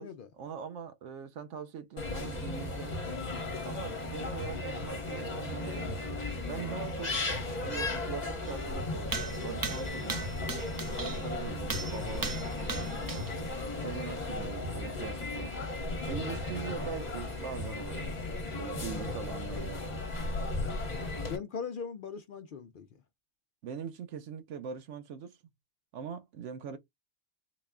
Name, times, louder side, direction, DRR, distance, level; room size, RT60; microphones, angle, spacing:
voice 1, 0.4-3.0 3.6-6.1 6.5-7.2 7.6-10.3 11.0-13.3 13.8-15.6 16.1-18.3 18.6-19.8 23.6-25.4 25.9-26.8, right 7 dB, 85° right, 1.0 m, -42 dB
sound 1, 2.0-21.4, left 2 dB, 40° left, 1.2 m, -35 dB
sound 2, 8.5-8.6 9.1-11.3 11.7-13.4 13.8-13.9 14.8-14.9, right 4 dB, 35° right, 0.3 m, -38 dB
voice 2, 20.8-22.9, left 6 dB, 60° left, 0.6 m, -40 dB
3.9 x 2.2 x 3.6 m
omnidirectional pair, 1.2 m